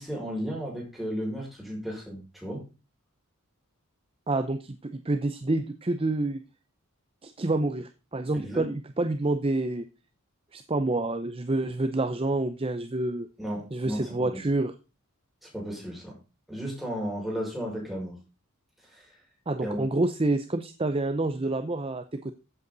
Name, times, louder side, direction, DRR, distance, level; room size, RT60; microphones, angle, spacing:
voice 1, 0.0-2.7 8.4-8.6 13.4-14.4 15.4-16.1 16.5-18.2 18.9-19.1 19.6-19.8, equal, ahead, -2 dB, 5.7 m, -34 dB
voice 2, 4.3-6.4 7.2-9.9 10.5-13.3 13.7-14.7 19.5-22.3, right 2 dB, 25° right, 10 dB, 0.6 m, -28 dB
15.0 x 8.3 x 4.0 m, 0.30 s
head